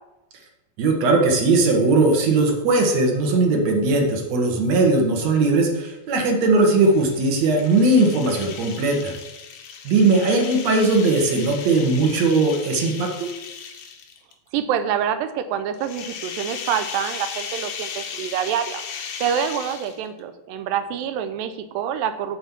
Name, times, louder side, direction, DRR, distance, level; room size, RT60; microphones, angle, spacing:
voice 1, 0.8-9.1 9.8-13.3, right 3 dB, 60° right, 2 dB, 2.1 m, -19 dB
sound 1, 6.6-14.3 15.7-20.2, left 6 dB, 85° left, 2.7 m, -36 dB
voice 2, 14.5-18.8 19.2-22.4, right 8 dB, 85° right, 10 dB, 2.3 m, -26 dB
8.0 x 4.3 x 7.1 m, 0.98 s
omnidirectional pair, 4.0 m